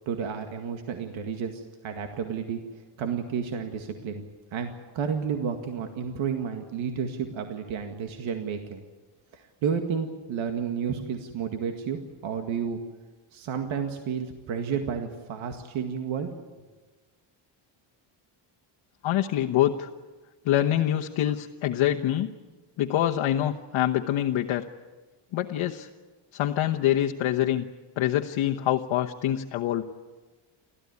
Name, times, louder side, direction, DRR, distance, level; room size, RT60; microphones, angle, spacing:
voice 1, 0.1-2.6 3.0-4.2 4.5-8.8 9.3-12.8 13.3-16.3, right 7 dB, 75° right, 5 dB, 2.1 m, -31 dB
voice 2, 19.0-19.9 20.4-22.3 22.8-24.6 25.3-25.9 26.3-27.7 28.0-29.8, left 12 dB, 75° left, 3 dB, 1.2 m, -25 dB
29.5 x 14.0 x 9.7 m, 1.3 s
cardioid pair, 175°, 48 cm